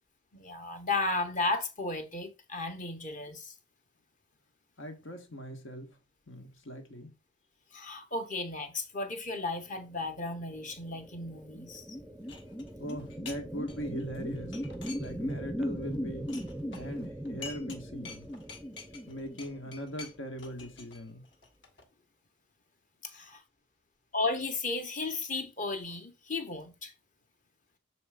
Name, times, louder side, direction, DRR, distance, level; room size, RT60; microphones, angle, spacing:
voice 1, 0.3-3.5 7.7-11.9 23.0-23.4 24.1-26.9, left 3 dB, 40° left, 1.1 m, -34 dB
voice 2, 4.8-6.0 6.3-7.1 12.8-14.6 15.0-16.3 16.7-18.3 18.9-21.3, equal, 80° left, 1.5 m, -41 dB
sound 1, 10.4-20.2, equal, ahead, 0.5 m, -39 dB
sound 2, 12.3-13.4 13.7-15.4 15.7-17.8 18.0-21.8, left 4 dB, 60° left, 1.3 m, -48 dB
7.0 x 3.1 x 4.9 m
head